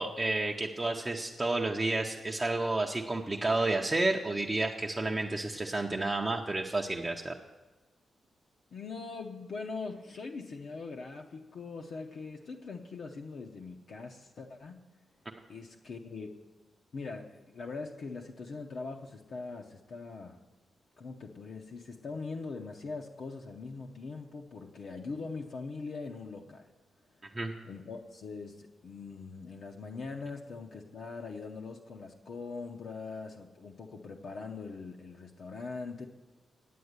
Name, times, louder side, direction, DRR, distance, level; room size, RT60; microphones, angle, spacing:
voice 1, 0.0-7.4 27.3-27.5, right 2 dB, 15° right, 0 dB, 0.6 m, -31 dB
voice 2, 8.7-14.8 15.5-16.3 16.9-20.4 21.0-26.7 27.6-36.1, left 4 dB, 55° left, 1 dB, 0.7 m, -42 dB
9.4 x 8.7 x 8.0 m, 1.2 s
wide cardioid pair, 160°, 0 cm